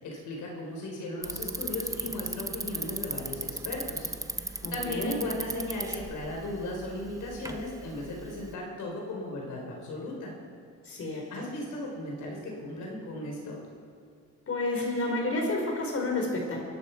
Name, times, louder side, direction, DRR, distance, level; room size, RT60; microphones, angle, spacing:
voice 1, 0.0-10.3 11.3-13.6, left 1 dB, 80° left, -1 dB, 4.4 m, -36 dB
Bicycle, 1.2-8.5, right 2 dB, 10° right, 0.9 m, -37 dB
voice 2, 4.6-5.2 10.8-11.3 14.5-16.6, left 2 dB, 50° left, 0 dB, 4.6 m, -30 dB
23.0 x 11.5 x 4.7 m, 2.3 s
cardioid pair, 90°, 30 cm